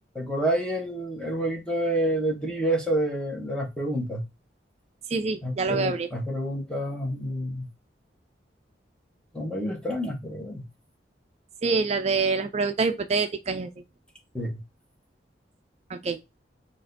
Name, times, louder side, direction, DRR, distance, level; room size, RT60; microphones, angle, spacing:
voice 1, 0.1-4.2 5.4-7.7 9.3-10.7 14.3-14.6, right 1 dB, 5° left, 1.0 m, -28 dB
voice 2, 5.1-6.1 11.6-13.7 15.9-16.2, right 4 dB, 35° right, 0.4 m, -26 dB
6.2 x 2.5 x 2.5 m
head